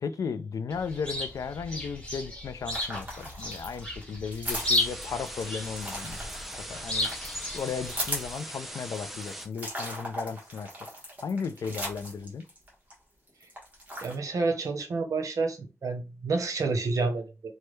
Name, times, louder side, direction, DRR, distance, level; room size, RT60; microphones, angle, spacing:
voice 1, 0.0-6.2 6.6-7.1 7.5-10.7 11.2-12.5, left 6 dB, 85° left, 0.3 m, -35 dB
Chirp tweet, 0.7-8.3, left 2 dB, 15° left, 1.1 m, -34 dB
sound 1, 2.7-12.9 13.3-14.2, equal, 25° right, 1.2 m, -38 dB
sound 2, 4.5-9.5, equal, 5° right, 0.5 m, -41 dB
voice 2, 14.0-17.3, right 3 dB, 75° right, 0.8 m, -29 dB
3.1 x 2.2 x 3.1 m
wide cardioid pair, 145°, 6 cm